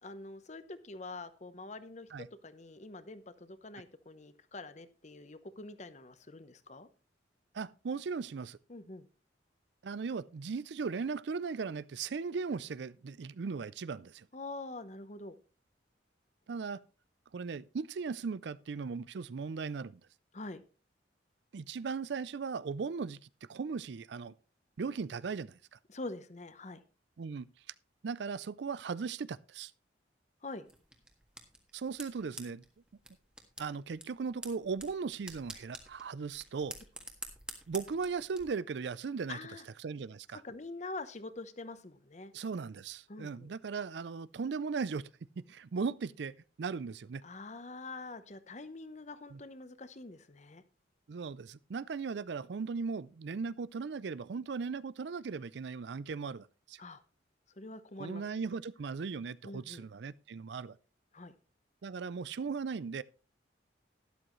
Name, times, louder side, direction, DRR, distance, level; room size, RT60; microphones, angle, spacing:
voice 1, 0.0-6.9 8.7-9.1 14.3-15.4 20.3-20.6 25.9-26.8 30.4-30.7 39.3-39.7 40.4-42.3 43.1-43.5 47.2-50.6 56.8-57.0 57.6-58.4 59.4-59.9 61.1-61.3, left 2 dB, 40° left, 0.9 m, -45 dB
voice 2, 7.5-8.6 9.8-14.3 16.5-16.8 17.3-20.0 21.5-23.2 23.5-24.3 24.8-25.8 27.2-27.5 28.0-29.7 31.7-32.6 33.6-36.8 37.7-39.4 39.8-40.4 42.3-45.1 45.4-46.3 46.6-47.2 49.3-49.4 51.1-56.8 58.0-60.8 61.8-63.0, right 5 dB, 65° right, 0.4 m, -37 dB
sound 1, 30.7-38.4, right 1 dB, 5° right, 1.6 m, -49 dB
12.5 x 11.5 x 3.1 m
head